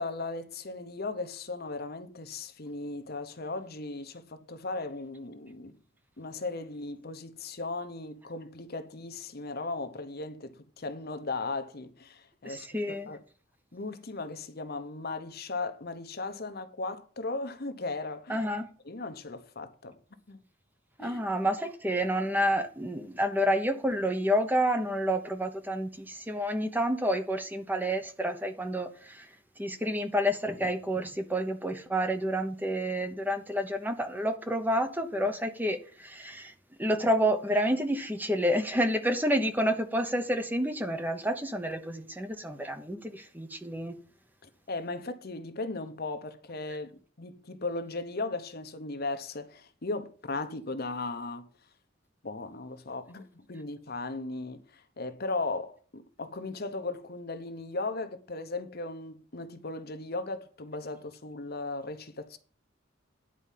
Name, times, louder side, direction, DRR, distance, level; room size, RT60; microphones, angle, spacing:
voice 1, 0.0-5.8 6.2-13.2 13.7-18.4 18.8-20.0 20.3-20.4 21.0-21.2 44.7-51.5 52.2-62.4, left 3 dB, 55° left, 1.1 m, -37 dB
voice 2, 12.4-13.1 18.3-18.7 21.0-29.3 29.6-36.5 36.8-44.0, equal, 10° right, 1.0 m, -29 dB
10.0 x 4.8 x 7.5 m
head